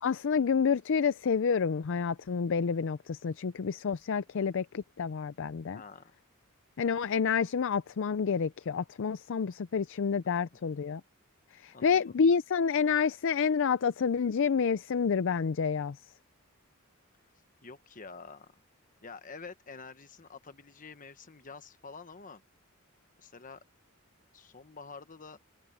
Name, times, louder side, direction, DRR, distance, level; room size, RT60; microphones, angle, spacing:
voice 1, 0.0-5.8 6.8-11.0 11.5-16.0, left 6 dB, 60° left, 0.4 m, -28 dB
voice 2, 5.7-6.1 11.7-12.1 17.6-18.5 19.0-22.4 23.2-23.6 24.3-25.4, left 4 dB, 40° left, 1.2 m, -48 dB
open air
head